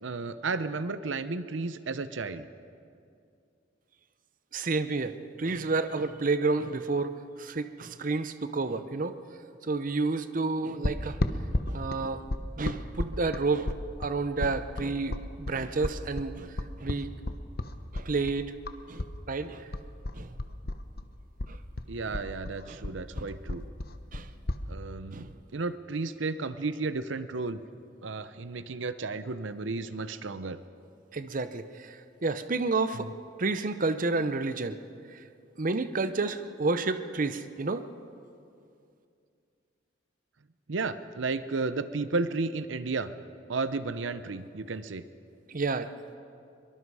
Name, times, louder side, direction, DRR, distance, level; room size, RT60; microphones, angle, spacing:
voice 1, 0.0-2.5 21.9-23.6 24.7-27.6 28.0-30.6 32.9-33.1 40.7-43.1 43.5-45.0, right 3 dB, 85° right, 13 dB, 0.7 m, -33 dB
voice 2, 4.5-9.1 9.6-11.2 11.7-12.2 12.6-13.7 14.0-16.5 16.8-17.1 17.9-18.5 18.9-19.0 19.3-19.7 20.1-20.3 21.5-21.6 22.7-22.8 23.1-23.3 24.1-24.3 25.1-25.3 31.1-33.1 33.4-34.8 35.1-35.2 35.6-37.8 45.5-45.9, right 3 dB, 45° right, 11 dB, 0.7 m, -30 dB
sound 1, 10.8-19.1 19.4-21.1 21.4-24.6, left 2 dB, 55° left, 0.9 m, -33 dB
23.5 x 23.0 x 4.8 m, 2.5 s
head